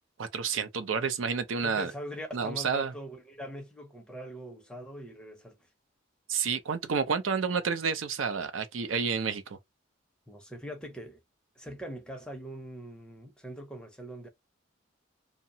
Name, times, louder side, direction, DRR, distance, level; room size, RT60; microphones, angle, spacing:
voice 1, 0.2-1.9 2.3-2.9 6.3-9.6, right 6 dB, 80° right, 0.5 m, -30 dB
voice 2, 1.6-5.6 10.3-11.2 11.6-14.3, equal, 5° left, 0.5 m, -42 dB
2.8 x 2.1 x 2.6 m
head